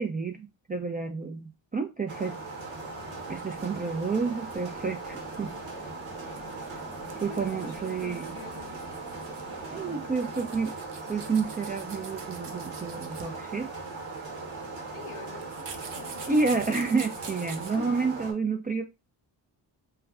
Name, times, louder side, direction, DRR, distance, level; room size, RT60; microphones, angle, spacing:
voice 1, 0.0-2.4 3.3-5.5 7.2-8.4 9.7-10.7 11.1-13.7 16.3-18.8, right 4 dB, 20° right, 0.4 m, -30 dB
sound 1, 2.1-18.3, right 3 dB, 75° right, 1.1 m, -39 dB
sound 2, 2.5-10.0, left 2 dB, 10° left, 0.8 m, -51 dB
sound 3, 2.9-17.8, right 5 dB, 60° right, 0.7 m, -47 dB
voice 2, 7.3-8.8 9.8-10.3 14.9-16.6 17.7-18.1, left 10 dB, 90° left, 0.6 m, -46 dB
2.3 x 2.2 x 3.5 m
supercardioid pair, 45°, 48 cm